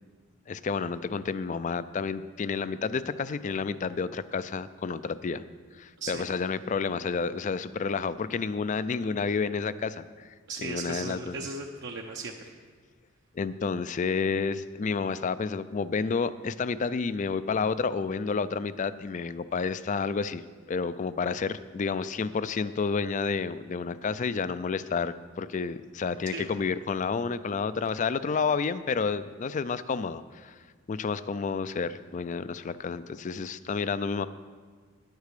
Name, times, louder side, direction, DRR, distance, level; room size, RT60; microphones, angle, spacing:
voice 1, 0.5-5.4 5.8-10.3 10.6-11.4 13.4-20.4 20.7-30.6 30.9-34.3, left 5 dB, 35° left, 15 dB, 0.3 m, -30 dB
voice 2, 6.0-6.3 10.5-12.6 26.3-26.5, right 3 dB, 60° right, 1 dB, 0.7 m, -37 dB
10.0 x 8.1 x 6.7 m, 1.6 s
head